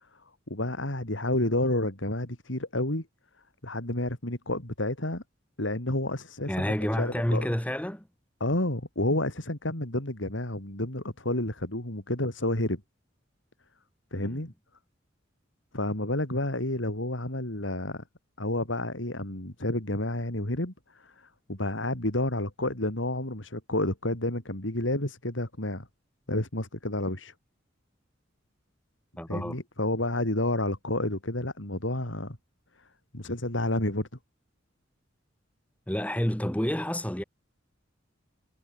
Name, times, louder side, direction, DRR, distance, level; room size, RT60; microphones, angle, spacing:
voice 1, 0.5-3.1 3.6-5.2 5.6-7.5 8.4-12.8 14.1-14.5 15.7-18.0 18.4-25.9 26.3-27.3 29.3-32.4 33.1-34.1, left 1 dB, 90° left, 4.7 m, -30 dB
voice 2, 6.5-8.1 14.1-14.4 29.2-29.6 35.9-37.2, equal, 10° left, 1.7 m, -29 dB
head